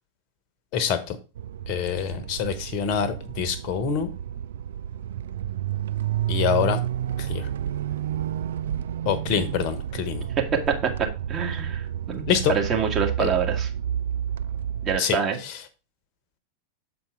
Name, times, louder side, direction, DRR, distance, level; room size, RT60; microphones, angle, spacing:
voice 1, 0.7-1.2 1.7-4.1 6.3-6.8 7.3-7.5 9.0-10.2 12.3-12.5 13.2-13.3 15.0-15.2 15.4-15.5, left 8 dB, 40° left, 1.1 m, -25 dB
sound 1, 1.4-15.0, right 10 dB, 60° right, 0.3 m, -30 dB
voice 2, 10.4-10.7 11.3-11.8 12.1-13.7 14.8-15.4, right 6 dB, 25° right, 1.7 m, -25 dB
7.8 x 4.4 x 4.8 m
figure-of-eight pair, 90°, 0 cm